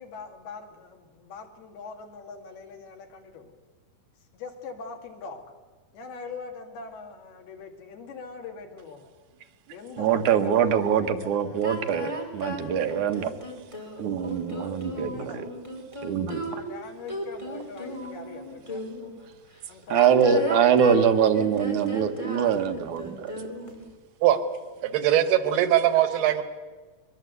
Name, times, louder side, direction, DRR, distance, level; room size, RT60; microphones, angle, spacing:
voice 1, 0.0-3.5 4.3-5.5 5.9-9.1 9.7-11.7 14.5-15.5 16.5-18.8 19.7-20.6, left 4 dB, 80° left, 4 dB, 4.4 m, -42 dB
voice 2, 10.0-13.3 14.0-15.5 16.0-16.6 19.9-23.5, right 7 dB, 65° right, 7 dB, 2.3 m, -23 dB
sound 1, 11.6-19.1 19.8-23.9, equal, 10° left, 3.1 m, -35 dB
voice 3, 24.8-26.4, right 12 dB, 85° right, 10 dB, 3.2 m, -21 dB
23.0 x 22.5 x 8.1 m, 1.4 s
omnidirectional pair, 4.4 m